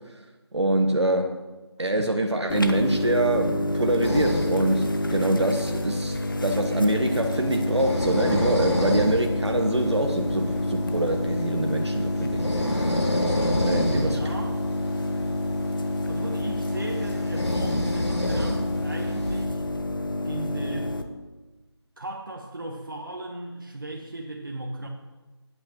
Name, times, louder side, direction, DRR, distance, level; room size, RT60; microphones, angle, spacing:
voice 1, 0.5-1.4 1.8-14.3, right 1 dB, 75° right, 3 dB, 1.2 m, -25 dB
sound 1, 2.5-21.0, left 1 dB, 50° left, 1.0 m, -28 dB
sound 2, 4.0-19.4, left 1 dB, 75° left, 2.4 m, -30 dB
voice 2, 13.9-14.6 16.1-19.6 20.2-21.0 22.0-24.9, right 2 dB, 50° right, 0 dB, 1.1 m, -36 dB
19.0 x 8.5 x 3.0 m, 1.2 s
figure-of-eight pair, 170°, 15 cm